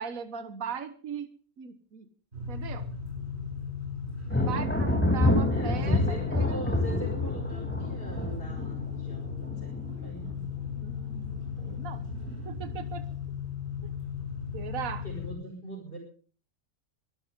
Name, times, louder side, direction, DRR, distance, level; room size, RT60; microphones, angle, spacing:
voice 1, 0.0-2.1 2.5-2.9 4.4-6.6 10.8-11.3 11.6-12.0 12.4-13.1 13.8-13.9 14.5-15.0, right 7 dB, 65° right, 11 dB, 1.7 m, -39 dB
sound 1, 2.3-15.3, left 6 dB, 45° right, 7.6 m, -36 dB
Thunder, 4.3-10.7 11.1-11.7 12.1-12.9, left 1 dB, 5° left, 3.0 m, -28 dB
voice 2, 5.5-10.4 15.0-16.0, right 1 dB, 40° left, -3 dB, 5.8 m, -42 dB
23.5 x 13.5 x 3.7 m, 0.40 s
omnidirectional pair, 1.5 m